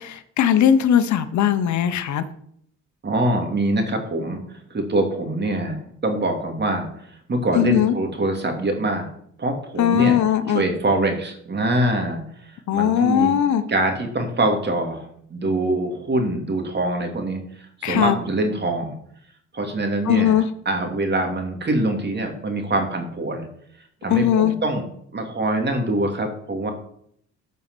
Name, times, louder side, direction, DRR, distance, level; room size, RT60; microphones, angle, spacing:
voice 1, 0.0-2.2 7.5-8.0 9.8-10.6 12.7-13.6 17.8-18.2 20.1-20.5 24.1-24.5, left 9 dB, 70° left, 11 dB, 1.0 m, -19 dB
voice 2, 3.0-6.9 7.3-9.1 9.4-10.2 10.5-12.2 12.7-13.3 13.7-17.4 17.8-19.0 19.5-23.5 24.0-24.9 25.1-26.7, right 1 dB, 35° right, 4 dB, 2.8 m, -24 dB
13.5 x 5.5 x 6.2 m, 0.68 s
cardioid pair, 90°, 30 cm